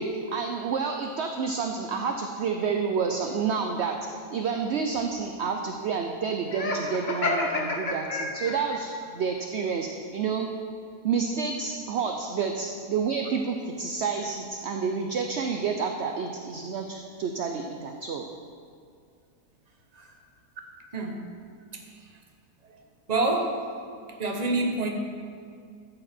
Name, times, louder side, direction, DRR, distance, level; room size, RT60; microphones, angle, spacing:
voice 1, 0.0-4.0 4.3-10.5 11.0-18.3, right 5 dB, 60° right, 4 dB, 0.8 m, -29 dB
Laughter, 6.5-8.8, left 2 dB, 35° left, 1.1 m, -29 dB
voice 2, 23.1-23.6 24.2-24.9, right 2 dB, 30° right, 2 dB, 1.0 m, -26 dB
13.0 x 7.9 x 4.4 m, 2.3 s
omnidirectional pair, 1.7 m